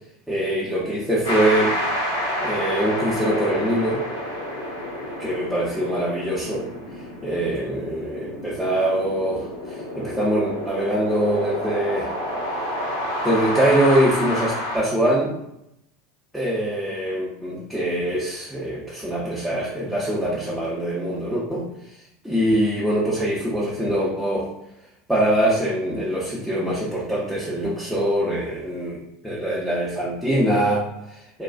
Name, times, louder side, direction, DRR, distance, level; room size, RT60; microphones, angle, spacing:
voice 1, 0.3-1.8 2.4-4.0 5.2-6.7 7.2-12.1 13.2-15.3 16.3-21.7 22.2-24.5 25.1-31.4, right 1 dB, ahead, -7 dB, 0.6 m, -23 dB
sound 1, 1.2-14.8, equal, 75° left, 0.7 m, -29 dB
2.3 x 2.3 x 2.3 m, 0.79 s
figure-of-eight pair, 80°, 0 cm